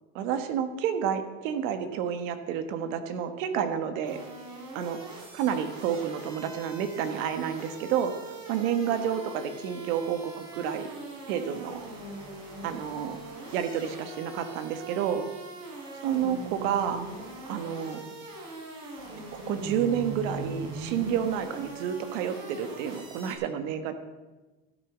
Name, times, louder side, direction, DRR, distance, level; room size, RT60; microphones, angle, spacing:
voice 1, 0.1-4.2 4.7-5.0 5.3-8.1 8.5-10.9 11.3-11.8 12.6-13.2 13.5-15.3 16.0-17.0 17.5-18.0 19.3-23.9, right 8 dB, 70° right, 9 dB, 1.5 m, -30 dB
sound 1, 4.0-23.3, right 3 dB, 40° right, 3.6 m, -42 dB
13.0 x 8.9 x 6.1 m, 1.2 s
cardioid pair, 150°, 40 cm